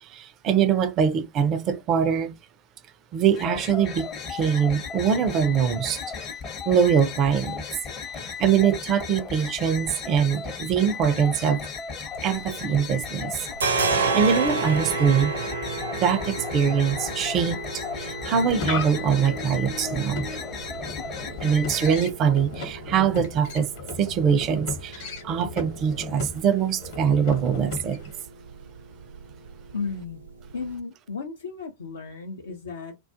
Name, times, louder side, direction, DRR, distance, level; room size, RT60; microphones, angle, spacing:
voice 1, 0.0-2.4 3.1-6.0 6.7-7.6 8.2-11.6 12.2-13.5 13.9-15.3 16.0-17.6 18.0-20.3 21.4-23.7 24.0-28.0, right 7 dB, 35° right, 0.4 m, -23 dB
sound 1, 3.3-22.0, left 6 dB, 30° left, 0.6 m, -35 dB
sound 2, 12.0-13.0 13.2-30.7, right 4 dB, 70° right, 0.6 m, -33 dB
sound 3, 18.2-28.2, left 3 dB, 50° left, 0.9 m, -36 dB
voice 2, 29.7-30.2 30.5-33.0, left 5 dB, 70° left, 0.4 m, -34 dB
2.3 x 2.3 x 2.5 m
figure-of-eight pair, 90°, 0 cm